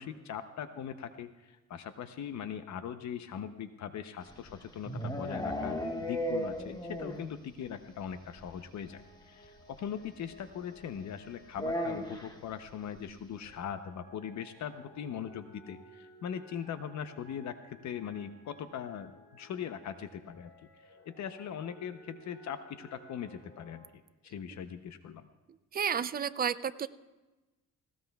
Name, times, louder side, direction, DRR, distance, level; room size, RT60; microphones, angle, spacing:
voice 1, 0.0-20.5 20.8-23.8 24.2-25.3, left 8 dB, 65° left, 9 dB, 0.7 m, -40 dB
sound 1, 4.3-7.3 7.6-7.7 8.0-8.1 8.4-8.5 9.7-9.8 11.5-12.4, equal, 15° left, 1.3 m, -35 dB
sound 2, 8.9-12.6 13.3-23.9, right 2 dB, 40° left, 5.7 m, -57 dB
voice 2, 25.7-26.9, right 7 dB, 30° right, 14 dB, 0.4 m, -31 dB
19.0 x 18.0 x 2.3 m, 1.2 s
cardioid pair, 130°, 30 cm